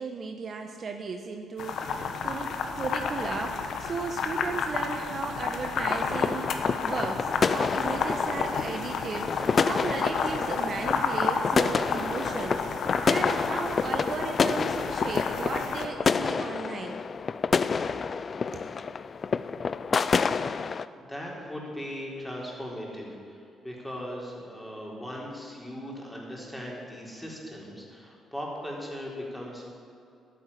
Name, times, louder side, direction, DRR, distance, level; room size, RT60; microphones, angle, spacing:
voice 1, 0.0-17.0 18.5-18.7, right 4 dB, 50° right, 5 dB, 1.0 m, -35 dB
sound 1, 1.6-15.8, left 5 dB, 65° left, 1.3 m, -31 dB
sound 2, 5.8-20.8, left 5 dB, 40° left, 0.5 m, -29 dB
voice 2, 21.0-29.6, equal, 5° left, -3 dB, 3.9 m, -38 dB
12.0 x 9.5 x 8.6 m, 2.5 s
cardioid pair, 90°, 0 cm